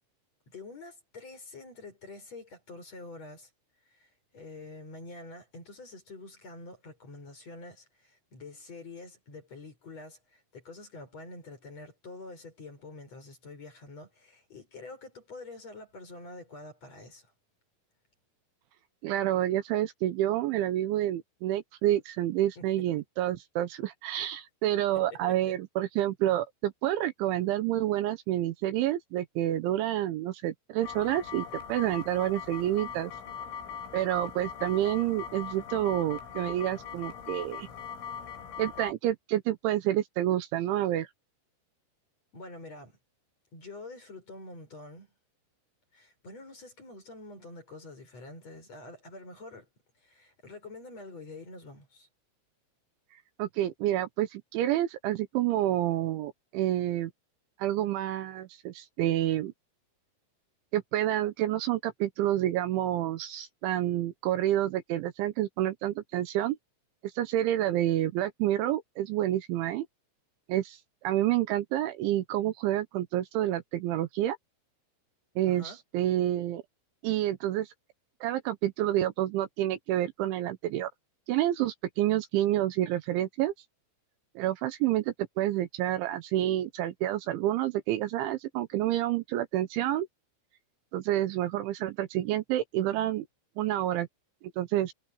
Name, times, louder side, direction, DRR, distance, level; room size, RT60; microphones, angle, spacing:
voice 1, 0.5-3.5 3.9-17.3 22.6-22.7 25.1-25.6 42.3-43.0 43.5-45.1 45.9-49.7 50.0-52.1 75.5-75.8, left 2 dB, 30° left, 7.7 m, -46 dB
voice 2, 19.0-33.1 33.9-37.7 38.6-41.1 53.4-57.1 57.6-59.5 60.7-66.6 67.2-69.8 70.5-70.8 71.0-74.4 75.4-76.6 77.0-77.7 78.2-80.9 81.3-83.5 84.4-90.1 90.9-93.3 93.6-94.1 94.6-94.9, right 13 dB, 75° right, 3.2 m, -28 dB
sound 1, 30.8-38.9, left 7 dB, 80° left, 6.9 m, -41 dB
omnidirectional pair, 5.7 m